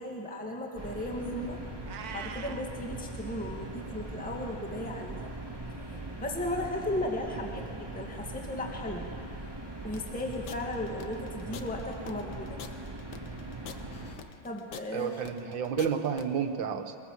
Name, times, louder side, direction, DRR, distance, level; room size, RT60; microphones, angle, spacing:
voice 1, 0.0-1.6 2.1-5.3 5.7-9.1 9.4-9.5 9.8-12.6 14.4-15.1, left 1 dB, 5° left, 0 dB, 1.8 m, -36 dB
sound 1, 0.7-14.1, right 2 dB, 10° right, 2.2 m, -41 dB
Meow, 1.8-2.7, right 7 dB, 55° right, 1.3 m, -41 dB
voice 2, 7.4-7.7 14.9-17.0, right 7 dB, 75° right, 7 dB, 1.9 m, -31 dB
sound 2, 9.9-16.2, left 7 dB, 65° left, 1.5 m, -45 dB
23.0 x 18.5 x 7.7 m, 2.5 s
omnidirectional pair, 2.1 m